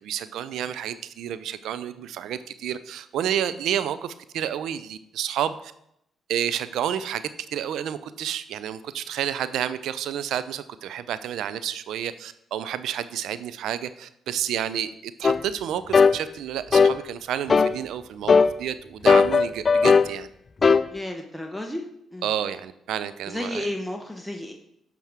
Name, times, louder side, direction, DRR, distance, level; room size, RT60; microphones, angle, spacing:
voice 1, 0.0-5.7 6.3-20.3 22.2-23.7, right 10 dB, 75° right, 14 dB, 0.5 m, -30 dB
sound 1, 15.2-15.4 15.9-16.2 16.7-17.0 17.5-17.8 18.3-18.5 19.1-20.1 20.6-20.9, left 5 dB, 40° left, 0.3 m, -17 dB
voice 2, 20.9-21.8 22.1-22.3 23.3-24.5, left 1 dB, ahead, 2 dB, 1.0 m, -32 dB
9.5 x 6.0 x 3.5 m, 0.77 s
supercardioid pair, 55°, 0 cm